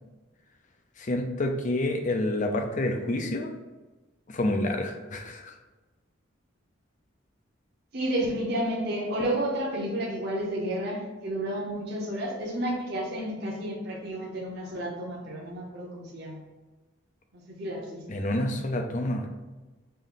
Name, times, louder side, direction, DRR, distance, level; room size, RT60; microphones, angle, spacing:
voice 1, 1.0-3.5 4.3-5.5 18.1-19.3, left 1 dB, 40° left, 4 dB, 0.5 m, -28 dB
voice 2, 7.9-16.4 17.3-18.2, right 1 dB, 55° right, -3 dB, 0.9 m, -31 dB
5.4 x 2.7 x 3.7 m, 1.2 s
head